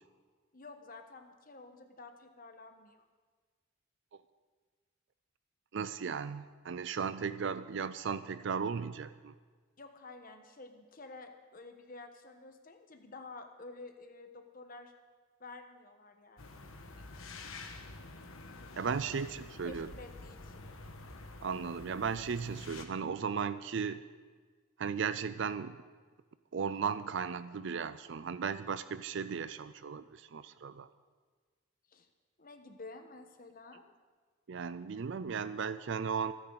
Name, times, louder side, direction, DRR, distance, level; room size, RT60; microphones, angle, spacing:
voice 1, 0.5-3.1 9.8-14.9 15.4-16.6 19.1-19.2 19.6-20.7 31.9-32.1 32.4-33.8, left 3 dB, 40° left, 6 dB, 1.2 m, -51 dB
voice 2, 5.7-9.3 18.8-19.9 21.4-24.0 24.8-25.8 26.5-30.9 34.5-36.3, right 6 dB, 55° right, 13 dB, 0.4 m, -36 dB
sound 1, 16.4-22.8, left 3 dB, 75° left, 1.4 m, -48 dB
26.5 x 9.8 x 4.0 m, 1.5 s
head